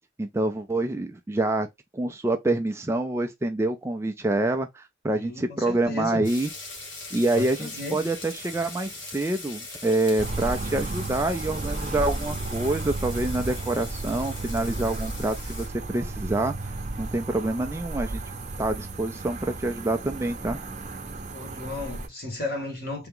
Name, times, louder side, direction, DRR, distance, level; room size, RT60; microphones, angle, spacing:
voice 1, 0.2-1.7 1.9-6.5 7.1-16.7 17.0-18.2 18.6-20.6, right 2 dB, 15° right, 0.3 m, -27 dB
voice 2, 5.1-6.3 7.3-8.0 21.3-23.1, left 2 dB, 50° left, 1.6 m, -34 dB
sound 1, 6.2-15.7, left 3 dB, 70° left, 1.7 m, -40 dB
sound 2, 10.2-22.1, right 2 dB, 35° right, 0.7 m, -33 dB
3.5 x 2.8 x 3.7 m
head